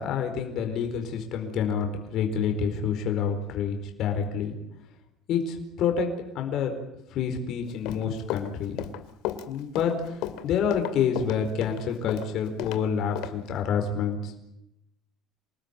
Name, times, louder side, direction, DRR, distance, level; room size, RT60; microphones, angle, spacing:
voice 1, 0.0-4.5 5.3-6.7 7.1-8.8 9.5-14.3, left 7 dB, 50° left, 4 dB, 4.6 m, -28 dB
Run, 7.7-12.8 13.2-13.3, left 13 dB, 70° left, 2.5 m, -34 dB
27.5 x 19.0 x 9.8 m, 0.85 s
cardioid pair, 165°, 0 cm